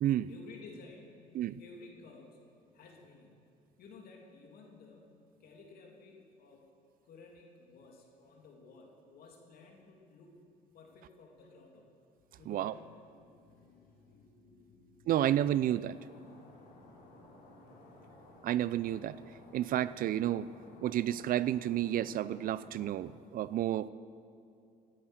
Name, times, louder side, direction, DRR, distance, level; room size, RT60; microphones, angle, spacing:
voice 1, 0.3-2.4 2.7-3.3 3.8-5.0 5.4-6.6 7.0-11.9 12.4-15.4, left 3 dB, 65° left, 1 dB, 2.9 m, -55 dB
voice 2, 15.1-16.0 18.4-19.2 19.5-20.5 20.8-23.9, right 12 dB, 60° right, 17 dB, 0.4 m, -31 dB
Stream, 15.9-22.9, left 1 dB, 85° left, 3.8 m, -56 dB
17.0 x 9.9 x 6.4 m, 2.6 s
cardioid pair, 110°, 17 cm